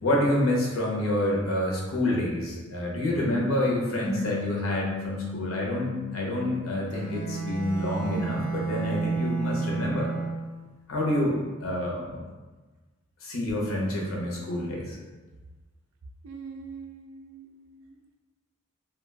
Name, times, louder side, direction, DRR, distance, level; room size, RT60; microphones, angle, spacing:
voice 1, 0.0-10.1 10.9-12.2 13.2-15.0, left 1 dB, 90° left, -2 dB, 0.7 m, -28 dB
sound 1, 4.0-8.7, left 6 dB, 10° right, 0.6 m, -37 dB
Bowed string instrument, 6.9-10.7, right 5 dB, 60° right, 0.7 m, -31 dB
voice 2, 16.2-18.0, right 5 dB, 80° right, 3 dB, 0.4 m, -43 dB
2.3 x 2.2 x 3.3 m, 1.3 s
head